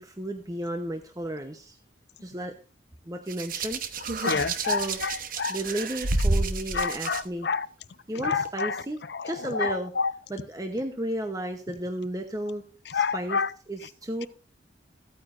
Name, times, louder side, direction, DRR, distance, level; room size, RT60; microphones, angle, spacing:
voice 1, 0.0-1.8 2.2-2.5 3.1-3.8 4.7-5.0 5.5-7.5 8.1-9.9 10.3-12.6 12.9-13.4 13.7-14.3, right 1 dB, 20° right, 0.8 m, -33 dB
Hands, 3.3-7.2 8.2-8.5, right 2 dB, 45° right, 0.9 m, -29 dB
voice 2, 4.2-5.6 6.7-7.7 8.2-8.8 9.1-10.1 12.9-13.5, left 5 dB, 60° left, 0.6 m, -28 dB
14.5 x 9.3 x 2.5 m
head